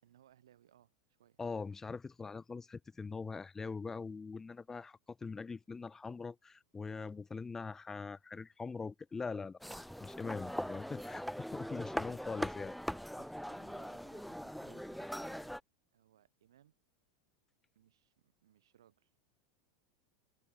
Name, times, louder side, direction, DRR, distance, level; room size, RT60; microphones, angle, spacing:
voice 1, 0.0-1.4 6.8-7.2 13.1-15.6 15.9-16.7 17.7-19.1, right 11 dB, 75° right, 2.8 m, -66 dB
voice 2, 1.4-9.6 10.0-11.2 11.5-12.7, left 4 dB, 15° left, 0.8 m, -42 dB
sound 1, 9.6-15.6, equal, ahead, 0.4 m, -41 dB
hypercardioid pair, 90°, 2 cm